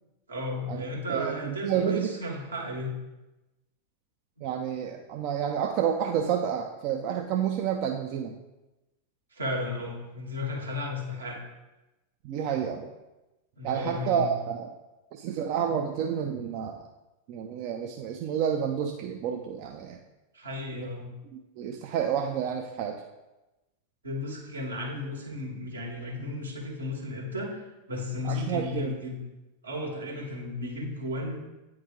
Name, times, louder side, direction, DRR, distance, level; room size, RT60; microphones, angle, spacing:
voice 1, 0.3-2.9 9.3-11.4 13.6-14.4 20.3-21.1 24.0-27.6 27.9-29.1 29.6-31.4, left 1 dB, 75° right, -2 dB, 1.6 m, -34 dB
voice 2, 1.1-2.1 4.4-8.3 12.2-12.9 13.6-14.7 15.1-16.9 17.3-20.0 20.7-20.9 21.6-23.0 28.2-28.9, right 8 dB, 45° right, 3 dB, 0.4 m, -29 dB
9.1 x 3.1 x 3.6 m, 1.0 s
figure-of-eight pair, 90°, 0 cm